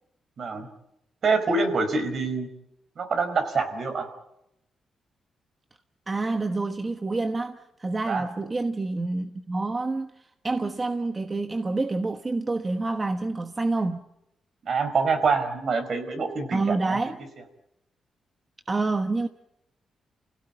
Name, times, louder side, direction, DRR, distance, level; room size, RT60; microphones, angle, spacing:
voice 1, 0.4-0.7 1.2-2.5 3.0-4.1 8.1-8.2 14.7-17.0, right 4 dB, 55° right, 4.8 m, -25 dB
voice 2, 6.1-14.1 16.5-17.2 18.7-19.3, right 3 dB, 25° right, 1.1 m, -28 dB
29.5 x 17.0 x 9.0 m
cardioid pair, 100°, 0 cm